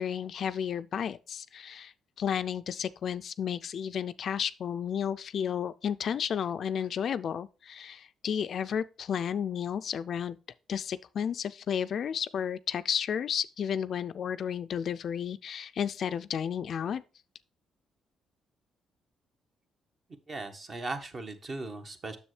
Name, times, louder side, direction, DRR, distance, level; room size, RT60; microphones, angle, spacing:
voice 1, 0.0-1.9 2.2-10.4 10.7-17.0, left 8 dB, 60° left, 0.3 m, -32 dB
voice 2, 20.3-22.2, right 2 dB, 40° right, 1.2 m, -38 dB
7.1 x 6.7 x 3.2 m
cardioid pair, 90°, 0 cm